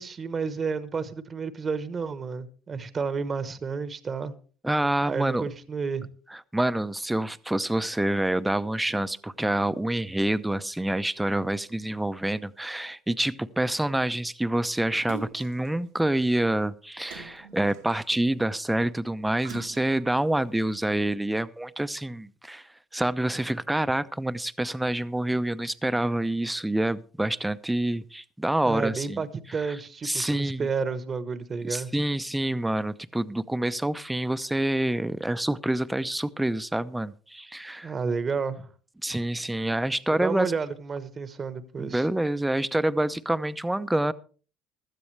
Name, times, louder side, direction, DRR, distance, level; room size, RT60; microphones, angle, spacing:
voice 1, 0.0-4.3 5.0-6.1 28.7-32.0 37.8-38.7 40.2-42.1, right 5 dB, 35° right, 1.2 m, -31 dB
voice 2, 4.6-5.4 6.3-22.7 22.9-29.2 29.7-29.8 30.0-30.7 31.7-37.9 39.0-40.5 41.8-44.1, right 1 dB, 10° right, 0.8 m, -27 dB
Splash splatter, 15.1-15.7 17.0-18.3 19.4-20.2 20.8-20.9, right 7 dB, 85° right, 1.7 m, -43 dB
16.0 x 12.5 x 3.3 m
supercardioid pair, 75°, 0 cm